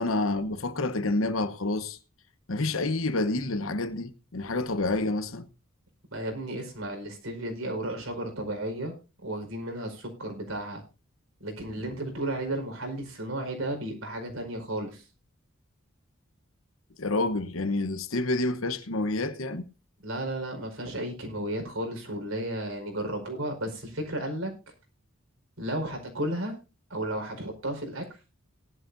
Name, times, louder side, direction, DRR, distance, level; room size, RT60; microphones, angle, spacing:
voice 1, 0.0-2.0 2.5-5.5 17.0-19.7, left 2 dB, 75° left, 1.1 m, -28 dB
voice 2, 6.1-8.9 9.2-10.8 11.4-15.1 20.0-24.5 25.6-26.6 26.9-28.2, right 1 dB, 80° right, 4.9 m, -33 dB
18.5 x 11.5 x 2.7 m
head